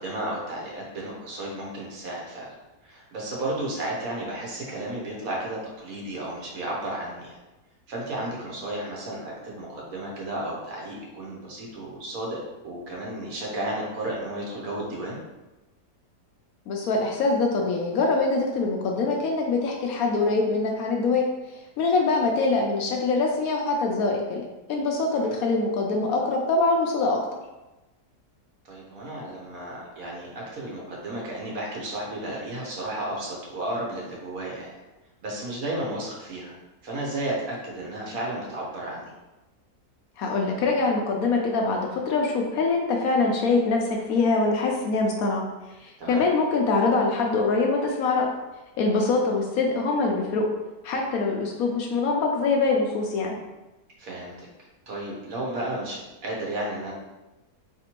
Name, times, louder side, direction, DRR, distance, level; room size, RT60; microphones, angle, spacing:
voice 1, 0.0-2.6 2.8-7.4 7.9-15.2 28.6-34.8 35.2-36.6 36.8-39.0 46.0-46.2 54.0-54.5 54.9-56.9, right 1 dB, 60° right, -3 dB, 1.4 m, -33 dB
voice 2, 16.7-21.2 21.8-24.4 24.7-27.2 40.2-45.4 45.8-48.3 48.8-50.5 50.8-53.4, left 3 dB, 70° left, 0 dB, 1.0 m, -24 dB
4.5 x 3.3 x 2.9 m, 1.1 s
omnidirectional pair, 1.7 m